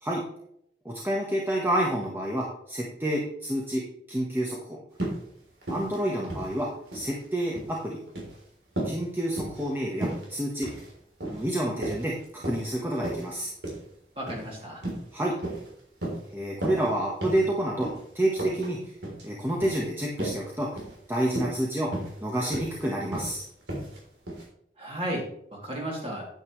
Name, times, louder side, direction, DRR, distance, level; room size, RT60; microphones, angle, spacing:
voice 1, 0.8-4.8 5.7-8.0 8.8-10.8 11.3-13.5 15.1-15.4 16.3-18.9 19.2-20.8 21.1-23.4, right 1 dB, 10° right, -3 dB, 1.2 m, -29 dB
sound 1, 5.0-5.2 5.6-5.9 6.2-7.1 7.4-7.7 8.1-8.4 8.8-9.0 9.4-9.7 10.0-10.3 10.6-10.9 11.2-11.5 11.8-12.7 13.0-13.2 13.6-13.8 14.3-14.5 14.8-15.1 15.4-15.7 16.0-16.2 16.6-16.9 17.2-17.4 17.8-18.0 18.4-18.7 19.0-19.2 19.6-19.8 20.2-20.5 20.8-20.9 21.3-21.6 21.9-22.2 22.5-22.8 23.1-23.3 23.7-24.0 24.3-24.4, right 1 dB, 85° right, 3.6 m, -33 dB
voice 2, 14.2-14.8 24.8-26.2, equal, 35° right, -2 dB, 2.7 m, -34 dB
9.4 x 9.0 x 3.2 m, 0.72 s
head